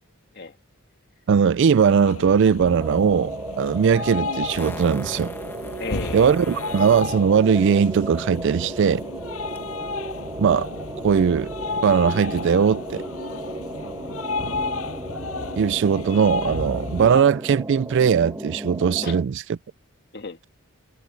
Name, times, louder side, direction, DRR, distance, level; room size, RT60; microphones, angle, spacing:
voice 1, 1.3-5.3 6.1-9.1 10.4-10.7 11.0-11.5 11.8-13.0 15.6-19.4, right 7 dB, 55° right, 0.3 m, -19 dB
sound 1, 1.9-17.2, left 3 dB, 80° left, 6.3 m, -32 dB
sound 2, 2.8-19.2, right 1 dB, 15° right, 1.0 m, -35 dB
Fart, 3.5-3.6 4.6-7.1 9.6-9.7, left 1 dB, 10° left, 1.5 m, -41 dB
voice 2, 5.8-6.7 19.0-19.2 20.1-20.5, left 4 dB, 50° left, 2.2 m, -35 dB
head